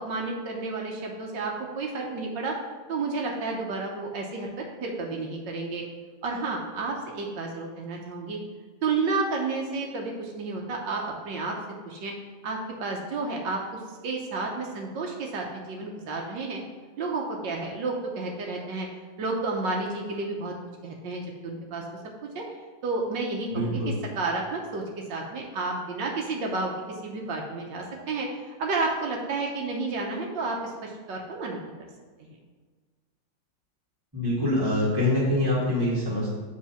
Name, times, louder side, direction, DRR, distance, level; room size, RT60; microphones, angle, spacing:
voice 1, 0.0-2.6 2.9-5.8 6.2-8.4 8.8-11.6 11.8-12.1 12.4-13.6 14.0-16.6 17.0-18.9 19.2-20.5 20.8-21.8 22.3-22.4 22.8-23.8 24.2-24.8 25.1-26.7 27.0-31.9 32.2-32.3, right 3 dB, 75° right, 0 dB, 1.6 m, -31 dB
voice 2, 23.5-23.9 34.1-36.3, left 1 dB, 15° right, -7 dB, 1.7 m, -25 dB
7.6 x 3.8 x 5.7 m, 1.5 s
omnidirectional pair, 2.0 m